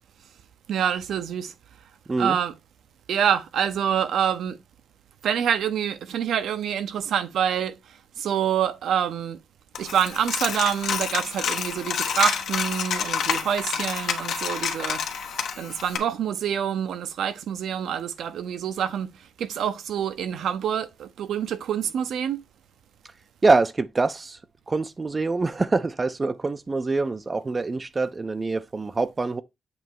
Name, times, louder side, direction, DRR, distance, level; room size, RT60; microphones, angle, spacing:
voice 1, 0.7-1.5 2.2-2.6 3.1-4.6 5.2-7.8 8.2-9.4 9.8-15.0 15.6-22.4, right 9 dB, 80° right, 0.7 m, -26 dB
Coin (dropping), 9.8-16.0, left 7 dB, 80° left, 1.1 m, -28 dB
voice 2, 23.4-24.4 24.7-29.4, right 3 dB, 25° right, 0.4 m, -24 dB
7.9 x 3.1 x 4.6 m
wide cardioid pair, 150°, 0 cm